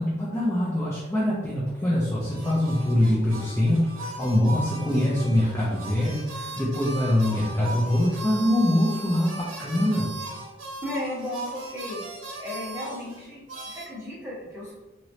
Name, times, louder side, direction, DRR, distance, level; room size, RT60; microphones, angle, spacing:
voice 1, 0.0-10.1, left 1 dB, 10° left, -7 dB, 0.4 m, -24 dB
sound 1, 2.2-13.9, right 2 dB, 80° right, 0.8 m, -38 dB
voice 2, 10.8-12.0 12.4-14.7, left 1 dB, 10° right, -8 dB, 1.2 m, -35 dB
3.0 x 2.9 x 2.7 m, 1.1 s
head